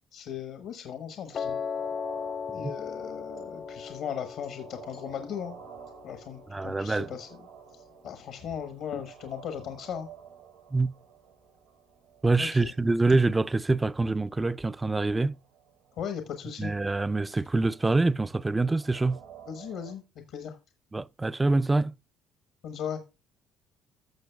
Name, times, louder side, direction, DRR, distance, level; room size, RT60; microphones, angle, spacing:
voice 1, 0.1-1.6 2.5-5.6 6.0-7.4 7.7-10.1 12.4-12.7 15.9-16.7 19.5-20.0 20.3-20.6 22.6-23.0, left 8 dB, 65° left, 1.1 m, -37 dB
Piano, 1.3-7.5, left 6 dB, 50° left, 0.3 m, -38 dB
sound 1, 1.3-20.0, right 9 dB, 85° right, 2.5 m, -52 dB
voice 2, 6.5-7.1 10.7-10.9 12.2-15.3 16.6-19.2 20.9-21.9, right 3 dB, 20° right, 0.4 m, -25 dB
15.5 x 6.5 x 2.3 m
hypercardioid pair, 65°, 0 cm